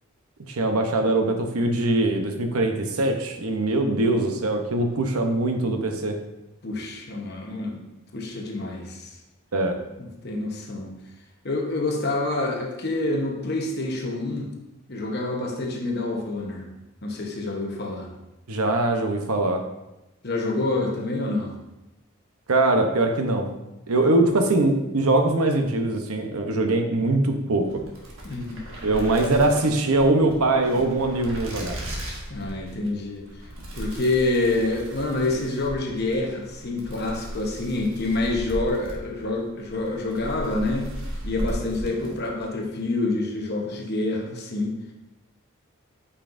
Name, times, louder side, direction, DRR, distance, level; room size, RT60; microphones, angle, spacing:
voice 1, 0.5-6.2 9.5-9.8 18.5-19.6 22.5-23.5 23.9-27.7 28.8-31.8, right 2 dB, 80° right, 5 dB, 0.8 m, -22 dB
voice 2, 6.6-7.8 8.1-9.1 10.0-10.9 11.4-14.5 14.9-16.7 17.0-18.1 20.2-21.5 28.2-28.6 32.3-33.3 33.7-40.9 41.2-44.7, left 2 dB, 45° left, 1 dB, 1.0 m, -27 dB
sound 1, 27.6-42.5, equal, 60° right, 1.5 m, -36 dB
8.4 x 5.5 x 2.6 m, 0.96 s
head